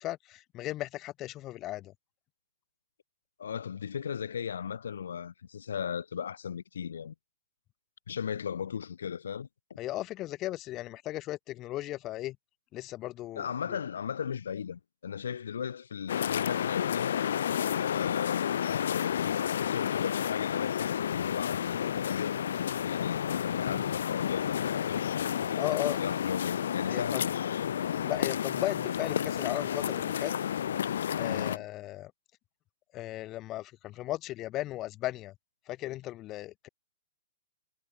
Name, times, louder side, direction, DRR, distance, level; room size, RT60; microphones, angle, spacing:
voice 1, 0.0-1.9 9.8-12.4 12.7-13.8 23.6-23.8 25.6-26.0 26.9-27.2 28.0-30.3 31.1-32.1 32.9-35.3 35.7-36.7, left 15 dB, 15° left, 4.5 m, -36 dB
voice 2, 3.4-7.1 8.1-9.5 13.4-17.2 17.8-22.4 22.8-27.7 31.3-31.7, left 7 dB, 85° left, 3.9 m, -37 dB
sound 1, 16.1-31.6, left 9 dB, 60° left, 1.7 m, -31 dB
hypercardioid pair, 180°, 0 cm